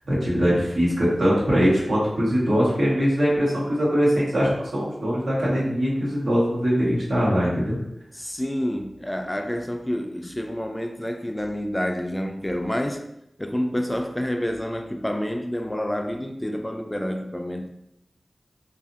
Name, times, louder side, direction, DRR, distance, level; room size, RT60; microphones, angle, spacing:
voice 1, 0.1-7.8, equal, 85° right, 1.0 m, -22 dB
voice 2, 8.1-13.0 13.4-17.7, equal, 15° left, 0.3 m, -28 dB
2.7 x 2.5 x 2.5 m
cardioid pair, 45°, 0 cm